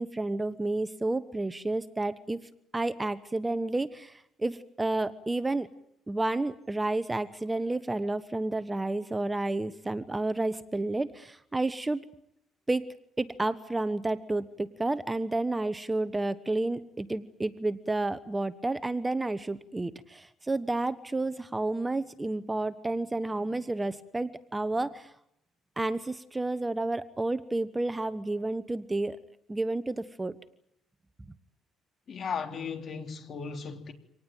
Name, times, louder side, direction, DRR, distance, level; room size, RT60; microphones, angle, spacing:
voice 1, 0.0-2.4 2.7-5.7 6.1-12.0 12.7-12.8 13.2-25.1 25.8-29.2 29.5-30.3, right 2 dB, 15° right, 1.1 m, -30 dB
voice 2, 32.1-33.9, left 6 dB, 50° left, 3.6 m, -36 dB
26.0 x 19.0 x 9.3 m
cardioid pair, 110°, 0 cm